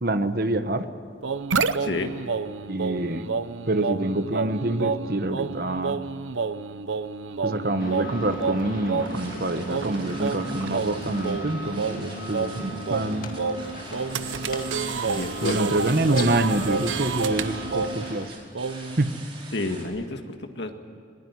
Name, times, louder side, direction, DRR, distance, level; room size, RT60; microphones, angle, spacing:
voice 1, 0.0-0.8 2.7-3.2 3.7-6.0 7.4-13.3 15.4-18.3 19.0-19.1, right 2 dB, 50° right, 9 dB, 1.2 m, -26 dB
sound 1, 1.2-18.2 18.6-19.0, right 5 dB, 80° right, 0.8 m, -29 dB
voice 2, 1.8-2.1 15.1-15.8 19.5-20.7, left 2 dB, 60° left, 5 dB, 1.9 m, -30 dB
sound 2, 7.8-18.3, left 2 dB, 45° left, 2.2 m, -38 dB
sound 3, 9.0-19.8, right 2 dB, 30° right, 4.5 m, -44 dB
21.5 x 20.0 x 9.7 m, 2.3 s
head